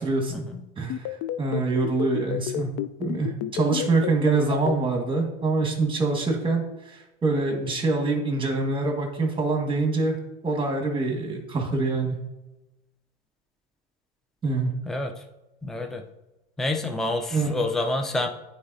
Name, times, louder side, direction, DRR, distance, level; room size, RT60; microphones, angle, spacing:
voice 1, 0.0-0.4 0.8-2.7 3.0-10.2 10.4-12.2 14.4-14.7 17.3-17.6, right 3 dB, 15° right, 2 dB, 1.7 m, -25 dB
sound 1, 0.9-4.7, left 12 dB, 50° left, 0.4 m, -29 dB
voice 2, 15.6-16.0 16.6-18.3, left 2 dB, ahead, 4 dB, 0.5 m, -28 dB
9.3 x 4.1 x 2.7 m, 0.99 s
hypercardioid pair, 100°, 30 cm